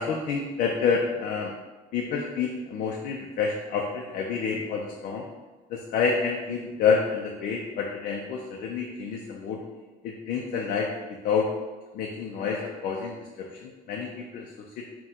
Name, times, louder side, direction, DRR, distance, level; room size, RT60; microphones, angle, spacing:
voice 1, 0.0-1.5 1.9-5.3 5.7-9.6 10.0-11.5 11.9-14.9, left 5 dB, 70° left, 0 dB, 0.5 m, -28 dB
3.7 x 2.2 x 4.2 m, 1.2 s
cardioid pair, 120°, 15 cm